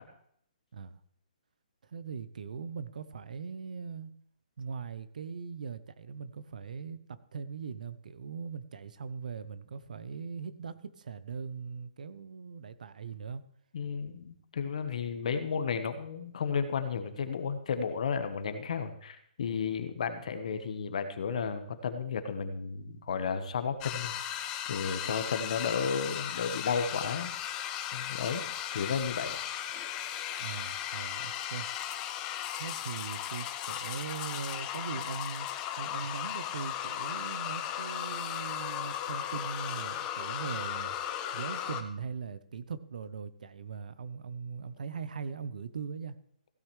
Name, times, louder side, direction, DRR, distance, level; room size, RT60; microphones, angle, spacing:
voice 1, 1.8-4.1 4.6-13.4 30.4-31.7 32.6-35.5 35.8-41.0 41.3-46.1, right 5 dB, 65° right, 14 dB, 0.8 m, -40 dB
voice 2, 13.7-24.2 24.7-27.3 27.9-28.4 28.7-29.4, left 6 dB, 55° left, 9 dB, 1.2 m, -33 dB
sound 1, 23.8-41.8, left 10 dB, 15° left, 0.6 m, -36 dB
16.0 x 8.8 x 3.2 m, 0.68 s
hypercardioid pair, 165°, 5 cm